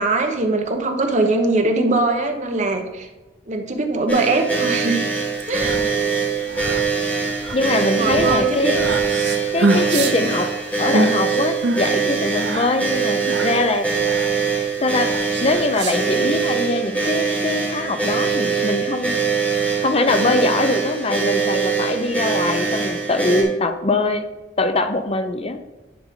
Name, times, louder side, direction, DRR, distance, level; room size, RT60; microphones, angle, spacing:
voice 1, 0.0-3.1 3.5-5.0 5.5-6.0 8.0-8.7, right 2 dB, 40° right, 4 dB, 1.0 m, -21 dB
sound 1, 4.1-23.4, right 5 dB, 10° left, 2.2 m, -23 dB
sound 2, 5.3-16.5, right 2 dB, 65° right, 0.8 m, -26 dB
voice 2, 7.5-9.0 9.5-10.5 10.8-13.9 14.8-15.1 15.4-19.4 19.8-24.3 24.6-25.6, left 2 dB, 35° left, 8 dB, 0.5 m, -22 dB
10.5 x 5.0 x 3.7 m, 1.1 s
head